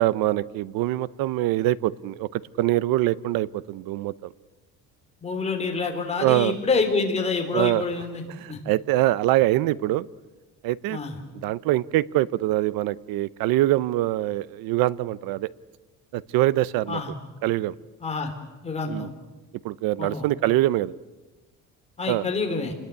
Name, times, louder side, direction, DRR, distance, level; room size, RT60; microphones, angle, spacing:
voice 1, 0.0-4.3 6.2-6.5 7.5-7.8 8.4-10.1 10.6-11.0 11.3-15.5 16.1-17.0 17.4-17.7 18.9-19.1 19.6-20.9 22.1-22.3, right 15 dB, 85° right, 18 dB, 0.9 m, -24 dB
voice 2, 5.2-8.6 10.9-11.1 16.9-17.1 18.0-18.3 18.6-19.1 20.0-20.3 22.0-22.7, left 4 dB, 20° left, 3 dB, 3.6 m, -27 dB
28.5 x 21.0 x 8.3 m, 1.2 s
cardioid pair, 165°, 34 cm